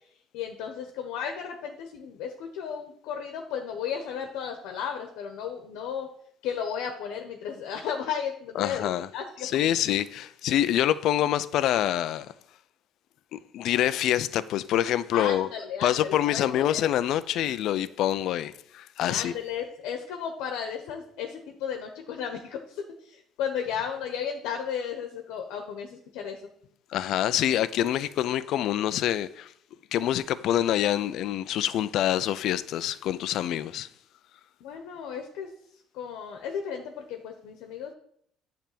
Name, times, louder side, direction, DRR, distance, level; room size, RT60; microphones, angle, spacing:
voice 1, 0.3-6.1 6.4-9.5 15.1-16.8 19.0-26.4 34.6-35.5 35.9-37.9, left 7 dB, 85° left, 1.1 m, -34 dB
voice 2, 8.6-9.1 9.4-12.3 13.3-15.5 15.8-19.3 26.9-29.5 29.9-33.9, left 11 dB, 50° left, 0.4 m, -26 dB
10.0 x 3.4 x 6.8 m
cardioid pair, 180°, 0 cm